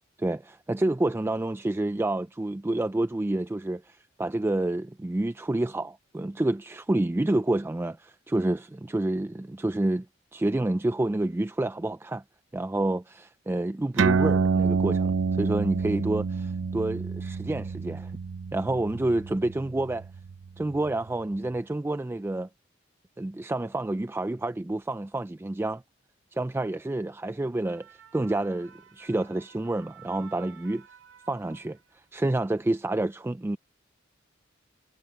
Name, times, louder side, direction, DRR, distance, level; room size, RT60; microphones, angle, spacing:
voice 1, 0.2-10.1 10.3-12.2 12.5-18.1 18.5-20.1 20.6-22.5 23.2-25.8 26.3-30.8 31.3-31.8 32.1-33.6, right 2 dB, 10° right, 0.3 m, -28 dB
sound 1, 14.0-20.9, right 5 dB, 70° right, 0.5 m, -28 dB
sound 2, 27.5-32.2 32.5-32.8, right 9 dB, 90° right, 2.1 m, -53 dB
head